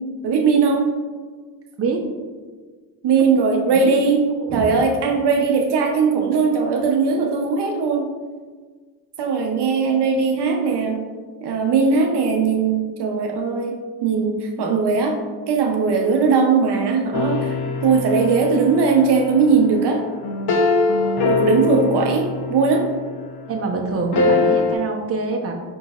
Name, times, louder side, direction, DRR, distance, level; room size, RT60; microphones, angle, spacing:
voice 1, 0.2-0.9 3.0-4.2 4.5-8.1 9.2-11.0 11.4-15.2 15.5-17.5 17.8-20.0 21.2-22.9, right 5 dB, 65° right, 2 dB, 0.6 m, -19 dB
sound 1, 17.1-23.4 24.1-24.8, left 4 dB, 60° left, 0.7 m, -23 dB
voice 2, 23.5-25.5, right 4 dB, 30° right, 1 dB, 0.7 m, -25 dB
5.2 x 3.8 x 2.3 m, 1.5 s
cardioid pair, 85°, 45 cm